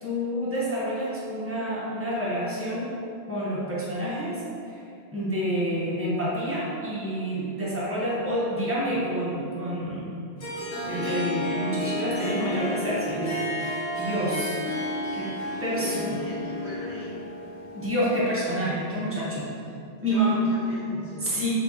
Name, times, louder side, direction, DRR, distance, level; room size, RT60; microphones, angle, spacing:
voice 1, 0.0-2.9 3.3-4.8 5.1-10.2 10.8-14.6 15.1-15.3 15.6-16.2 17.7-19.5 20.0-20.4 20.9-21.5, equal, 15° right, -8 dB, 0.6 m, -28 dB
Harp, 10.4-18.8, left 1 dB, 75° left, 1.3 m, -32 dB
voice 2, 15.5-17.2 19.5-21.5, equal, 45° left, -11 dB, 0.8 m, -41 dB
2.7 x 2.7 x 3.5 m, 2.5 s
omnidirectional pair, 1.1 m